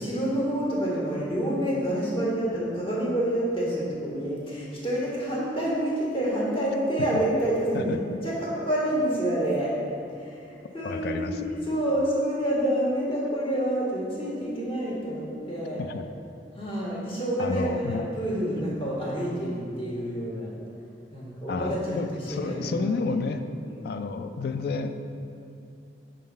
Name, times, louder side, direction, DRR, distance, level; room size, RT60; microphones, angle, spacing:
voice 1, 0.0-9.7 10.1-15.8 16.5-20.5 21.1-23.0 23.7-23.8, right 1 dB, 30° left, -6 dB, 1.5 m, -28 dB
voice 2, 10.8-11.4 15.9-16.0 17.4-18.1 21.5-23.4 23.8-24.9, left 4 dB, 60° left, 8 dB, 0.4 m, -30 dB
6.4 x 3.9 x 5.3 m, 2.7 s
head